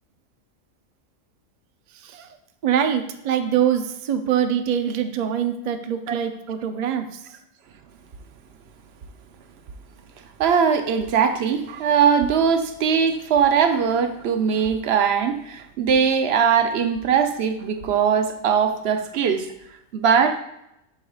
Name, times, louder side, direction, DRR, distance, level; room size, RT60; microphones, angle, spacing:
voice 1, 2.6-7.1, right 9 dB, 80° right, 7 dB, 0.4 m, -24 dB
voice 2, 10.4-19.5 19.9-20.4, right 7 dB, 60° right, 8 dB, 0.7 m, -20 dB
8.5 x 6.3 x 2.3 m, 0.82 s
omnidirectional pair, 1.4 m